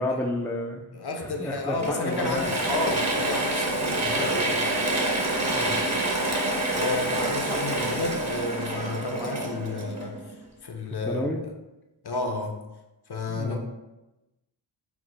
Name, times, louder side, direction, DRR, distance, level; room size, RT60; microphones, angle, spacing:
voice 1, 0.0-0.8 1.2-2.5 5.5-5.8 11.0-11.4 13.3-13.6, left 1 dB, 5° left, 1 dB, 0.4 m, -30 dB
voice 2, 0.9-4.7 6.7-10.2 10.6-11.2 12.0-12.6 13.1-13.6, left 3 dB, 55° left, 3 dB, 0.7 m, -31 dB
Mechanisms / Drill, 1.8-10.4, right 2 dB, 35° right, 0.9 m, -27 dB
4.6 x 2.1 x 3.8 m, 0.99 s
wide cardioid pair, 70°, 48 cm